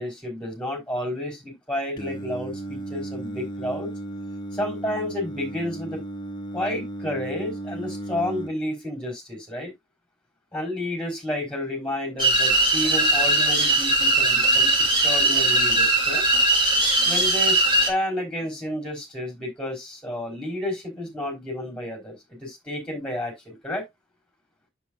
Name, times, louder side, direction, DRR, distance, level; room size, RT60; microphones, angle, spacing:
voice 1, 0.0-3.9 4.5-6.0 6.5-9.7 10.5-16.2 17.0-23.8, left 1 dB, 5° left, 3.9 m, -31 dB
Singing, 2.0-8.5, right 1 dB, 25° left, 1.1 m, -35 dB
sound 1, 12.2-17.9, right 2 dB, 25° right, 2.3 m, -20 dB
8.2 x 7.2 x 2.4 m
head